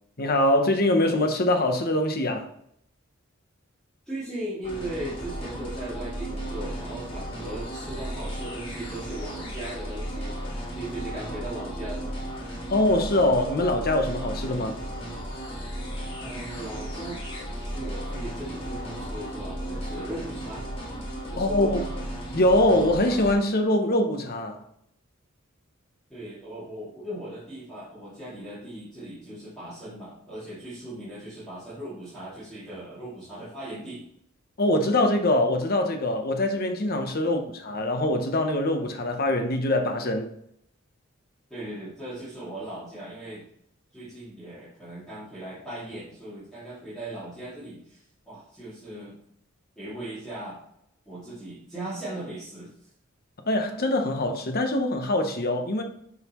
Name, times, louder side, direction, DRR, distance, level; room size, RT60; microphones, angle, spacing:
voice 1, 0.2-2.5 12.7-14.7 21.4-21.8 22.3-24.6 34.6-40.3 53.4-55.8, left 1 dB, 45° left, 0.9 m, -23 dB
voice 2, 4.1-12.1 16.2-20.7 21.3-21.9 26.1-34.1 37.2-37.4 41.5-43.5 43.9-48.0 48.3-49.2 49.8-50.6 51.1-52.7, right 1 dB, 5° left, 2.4 m, -38 dB
sound 1, 4.6-23.3, right 1 dB, 25° left, 1.5 m, -35 dB
11.0 x 4.0 x 3.0 m
head